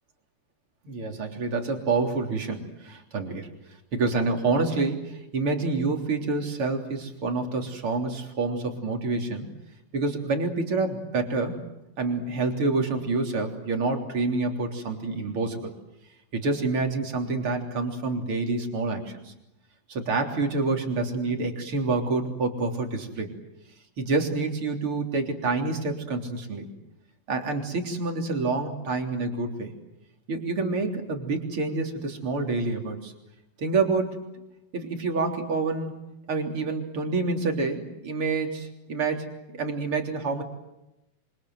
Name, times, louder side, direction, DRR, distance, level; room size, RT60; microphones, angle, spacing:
voice 1, 0.8-3.5 3.9-9.5 9.9-11.6 12.0-15.7 16.3-19.3 19.9-23.4 24.0-26.7 27.3-29.8 30.3-33.1 33.6-34.3 34.7-35.9 36.3-39.3 39.5-40.4, right 3 dB, 35° right, 3 dB, 4.0 m, -27 dB
27.5 x 26.0 x 7.9 m, 0.93 s
omnidirectional pair, 4.2 m